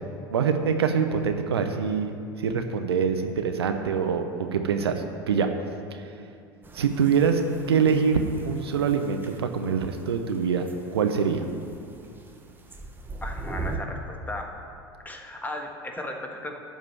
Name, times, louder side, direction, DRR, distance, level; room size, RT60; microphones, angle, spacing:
voice 1, 0.3-5.5 5.9-6.1 6.7-7.4 7.7-11.4, right 6 dB, 75° right, 6 dB, 0.8 m, -25 dB
sound 1, 6.6-13.8, right 3 dB, 15° right, 1.2 m, -41 dB
voice 2, 13.2-14.5 15.0-16.6, left 1 dB, 10° left, 2 dB, 1.6 m, -36 dB
12.5 x 5.3 x 7.5 m, 2.5 s
figure-of-eight pair, 75°, 13 cm